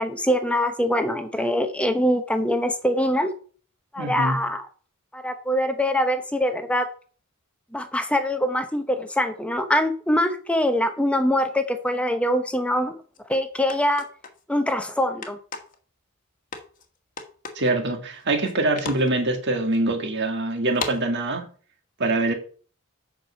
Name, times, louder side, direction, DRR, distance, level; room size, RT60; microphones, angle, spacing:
voice 1, 0.0-3.3 3.9-4.7 5.1-6.9 7.7-13.0 13.3-14.0 14.5-15.4, equal, 5° left, 0.8 m, -23 dB
voice 2, 4.0-4.4 17.6-21.5 22.0-22.3, right 2 dB, 55° right, 1.9 m, -24 dB
sound 1, 13.1-13.2 13.7-14.4 15.2-15.8 16.5-16.8 17.2-17.7 18.1-18.5 18.8-19.1 19.7-19.8 20.7-21.0, left 4 dB, 40° left, 1.4 m, -34 dB
8.6 x 6.1 x 5.6 m
head